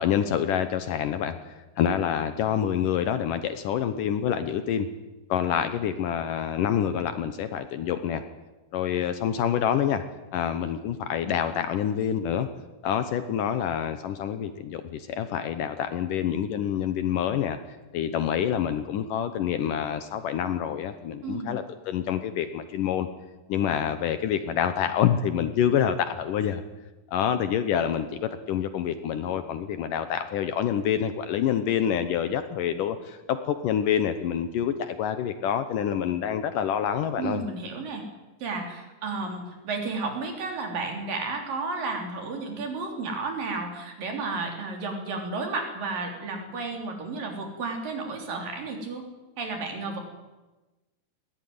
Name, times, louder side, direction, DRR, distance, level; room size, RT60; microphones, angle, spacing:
voice 1, 0.0-4.9 5.3-8.2 8.7-10.0 10.3-12.5 12.8-17.6 17.9-23.1 23.5-26.6 27.1-37.4, left 9 dB, 70° left, 10 dB, 2.3 m, -27 dB
voice 2, 37.2-38.0 38.4-49.1 49.4-50.0, right 3 dB, 60° right, 3 dB, 5.1 m, -32 dB
20.5 x 17.5 x 9.5 m, 1.1 s
omnidirectional pair, 4.4 m